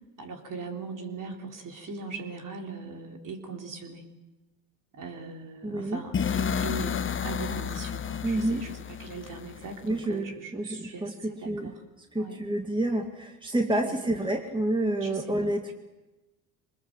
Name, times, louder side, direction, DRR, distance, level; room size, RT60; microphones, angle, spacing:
voice 1, 0.2-4.0 5.0-8.7 9.0-11.0 11.4-11.7 12.1-12.4 13.8-13.9 15.0-15.3, right 4 dB, 45° right, 3 dB, 3.9 m, -39 dB
voice 2, 5.6-6.0 8.2-8.7 9.8-15.7, right 1 dB, 10° right, 4 dB, 2.2 m, -29 dB
sound 1, 6.1-10.1, left 7 dB, 30° left, 0.9 m, -31 dB
23.5 x 20.0 x 7.5 m, 1.1 s
hypercardioid pair, 70°, 43 cm